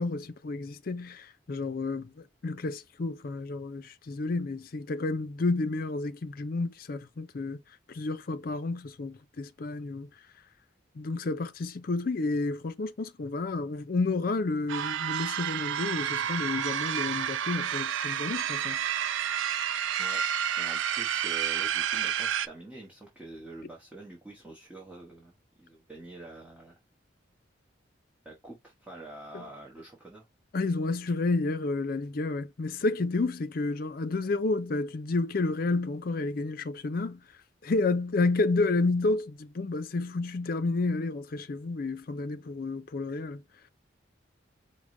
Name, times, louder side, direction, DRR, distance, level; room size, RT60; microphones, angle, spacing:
voice 1, 0.0-7.6 7.9-10.1 11.0-18.8 29.3-29.4 30.5-37.2 37.6-43.4, left 3 dB, 50° left, 0.5 m, -30 dB
sound 1, 14.7-22.5, right 9 dB, 80° right, 0.3 m, -30 dB
voice 2, 20.6-26.8 28.2-30.3, right 2 dB, 10° right, 1.1 m, -46 dB
4.8 x 2.1 x 3.7 m
head